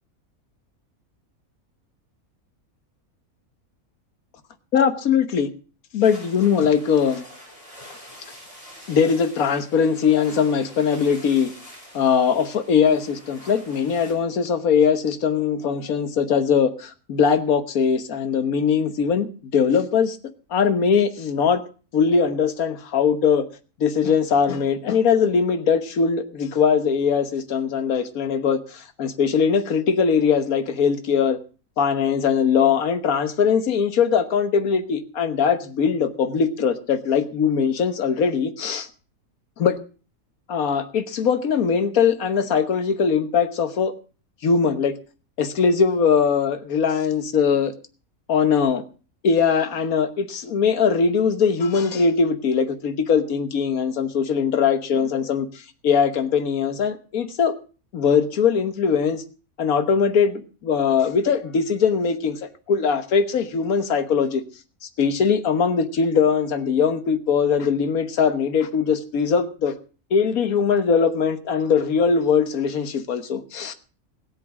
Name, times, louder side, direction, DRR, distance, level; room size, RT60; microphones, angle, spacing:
voice 1, 4.7-5.5 5.9-7.2 8.9-11.5 11.9-20.2 20.5-21.6 21.9-23.4 23.8-31.4 31.8-38.9 39.6-39.8 40.5-43.9 44.4-44.9 45.4-47.7 48.3-48.8 49.2-55.5 55.8-57.5 57.9-59.2 59.6-64.4 64.8-69.7 70.1-73.7, left 6 dB, 70° left, 1.6 m, -21 dB
sound 1, 6.0-14.1, equal, 20° left, 5.4 m, -45 dB
17.5 x 7.7 x 6.0 m
omnidirectional pair, 1.6 m